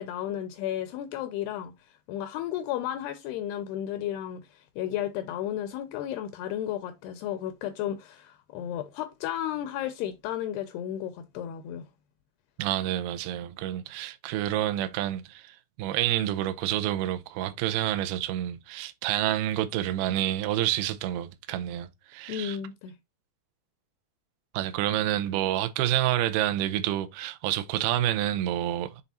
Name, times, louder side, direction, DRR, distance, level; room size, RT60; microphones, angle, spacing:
voice 1, 0.0-1.7 2.1-11.9 22.3-22.9, left 11 dB, 80° left, 2.4 m, -33 dB
voice 2, 12.6-22.6 24.5-29.0, right 13 dB, 80° right, 2.4 m, -28 dB
7.1 x 3.9 x 4.2 m
omnidirectional pair, 5.0 m